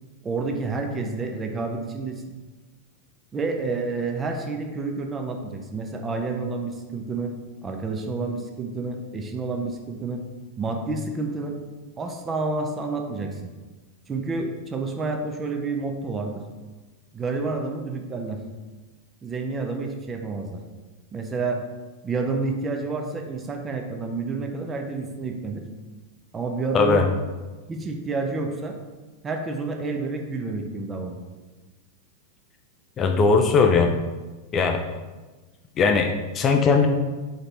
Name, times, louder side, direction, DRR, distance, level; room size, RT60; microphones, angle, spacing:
voice 1, 0.2-2.2 3.3-7.3 7.6-10.2 10.6-11.6 12.0-13.4 14.1-16.4 17.1-18.4 19.2-20.6 21.1-21.6 22.0-25.6 26.3-27.1 27.7-28.8 29.2-31.2, right 3 dB, 20° right, 3 dB, 0.6 m, -29 dB
voice 2, 26.7-27.0 33.0-33.9 34.5-34.8 35.8-36.9, left 4 dB, 25° left, 4 dB, 0.4 m, -19 dB
4.0 x 3.9 x 3.4 m, 1.3 s
figure-of-eight pair, 90°, 0 cm